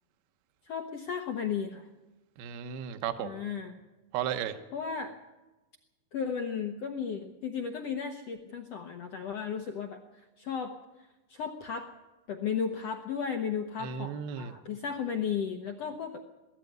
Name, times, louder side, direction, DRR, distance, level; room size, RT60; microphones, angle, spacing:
voice 1, 0.7-1.9 3.2-3.8 4.7-5.1 6.1-10.7 11.3-11.9 12.3-16.3, left 7 dB, 90° left, 5 dB, 1.3 m, -35 dB
voice 2, 2.4-3.4 4.1-4.6 13.8-14.5, right 9 dB, 80° right, 8 dB, 2.9 m, -34 dB
20.5 x 14.0 x 9.3 m, 1.1 s
omnidirectional pair, 4.4 m